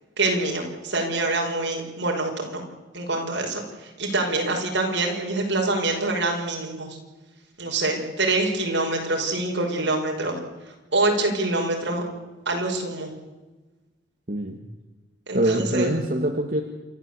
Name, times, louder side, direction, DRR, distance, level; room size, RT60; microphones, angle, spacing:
voice 1, 0.2-2.6 2.9-7.0 7.6-10.4 10.9-12.0 12.5-13.1 15.3-15.9, right 2 dB, 75° right, 1 dB, 5.9 m, -25 dB
voice 2, 14.3-14.6 15.3-16.6, right 1 dB, 50° right, 3 dB, 1.7 m, -24 dB
28.0 x 13.0 x 8.4 m, 1.2 s
head